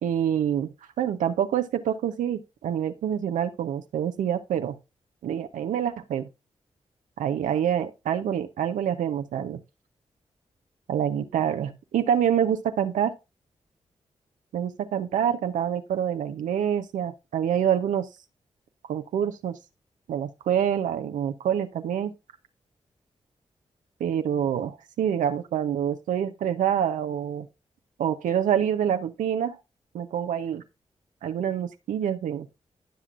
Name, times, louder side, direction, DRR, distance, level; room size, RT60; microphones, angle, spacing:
voice 1, 0.0-4.8 5.2-6.3 7.2-9.6 10.9-13.1 14.5-18.1 18.9-19.6 20.1-22.1 24.0-27.5 28.0-29.6 29.9-30.6 31.2-32.5, right 9 dB, 85° right, 0.7 m, -26 dB
15.5 x 5.9 x 2.5 m
supercardioid pair, 40°, 13 cm